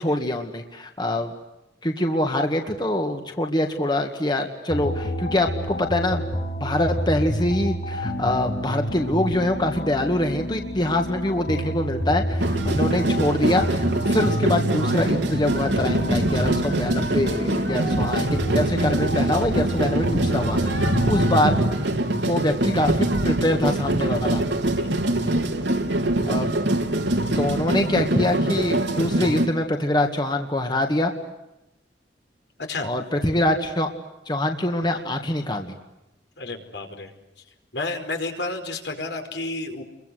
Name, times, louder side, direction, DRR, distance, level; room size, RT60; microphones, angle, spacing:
voice 1, 0.0-1.3 1.8-6.3 6.6-21.9 22.2-24.5 26.2-26.5 27.3-31.1 32.8-33.9 34.3-35.7, left 1 dB, 25° left, 4 dB, 2.1 m, -24 dB
sound 1, 4.7-21.7, equal, 50° left, 7.4 m, -29 dB
sound 2, 12.4-29.5, right 1 dB, 85° right, 3.4 m, -24 dB
voice 2, 36.4-37.1 37.7-39.8, left 2 dB, 75° left, 5 dB, 5.0 m, -31 dB
30.0 x 23.5 x 8.2 m, 0.94 s
head